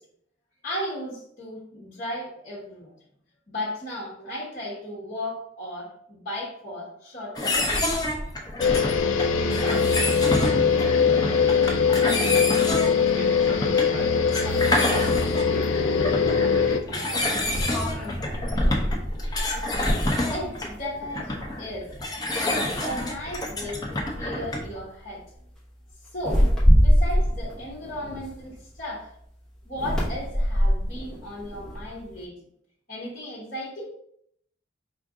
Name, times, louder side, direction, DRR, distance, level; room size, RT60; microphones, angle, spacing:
voice 1, 0.6-2.9 3.5-7.9 17.0-17.2 20.3-21.9 22.5-25.2 26.1-29.1 29.6-32.3 32.9-33.9, left 1 dB, 45° left, -6 dB, 1.1 m, -35 dB
sound 1, 7.4-24.8, left 1 dB, 20° left, 0.6 m, -28 dB
sound 2, 8.6-16.8, left 5 dB, 80° left, 0.4 m, -22 dB
voice 2, 9.5-11.1 12.7-15.9 16.5-19.0, right 1 dB, 75° right, -1 dB, 1.0 m, -42 dB
sound 3, 17.7-21.3 21.7-22.0 22.4-23.1 23.9-24.1 24.5-24.8 26.1-28.8 29.7-32.1, equal, 5° left, 1.0 m, -24 dB
4.8 x 2.5 x 3.6 m, 0.68 s
head